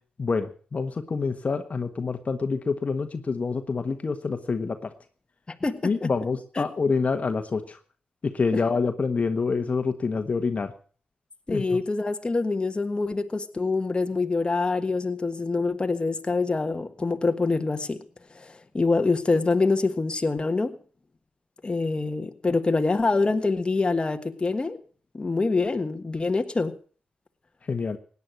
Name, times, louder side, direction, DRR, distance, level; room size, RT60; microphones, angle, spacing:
voice 1, 0.2-4.9 5.8-7.8 8.2-10.7 11.5-11.8 27.7-28.0, left 4 dB, 50° left, 1.4 m, -27 dB
voice 2, 5.5-6.1 6.6-6.7 8.5-8.6 11.5-18.0 18.3-20.8 21.6-24.8 25.1-26.8, left 3 dB, 30° left, 1.5 m, -25 dB
17.0 x 9.8 x 6.2 m
cardioid pair, 60°, 3 cm